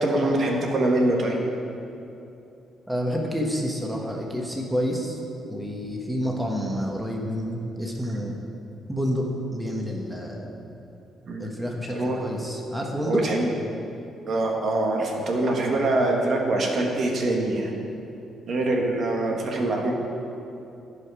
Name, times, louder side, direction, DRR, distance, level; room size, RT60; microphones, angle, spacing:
voice 1, 0.0-1.4 11.3-11.5 11.9-12.2 13.0-13.5 14.3-17.7 18.5-19.9, right 2 dB, 55° right, 0 dB, 1.4 m, -24 dB
voice 2, 2.9-5.2 5.4-8.4 8.9-9.3 9.5-10.5 11.4-13.2, equal, 5° right, 0 dB, 1.3 m, -28 dB
14.5 x 5.1 x 4.9 m, 2.8 s
cardioid pair, 90°, 0 cm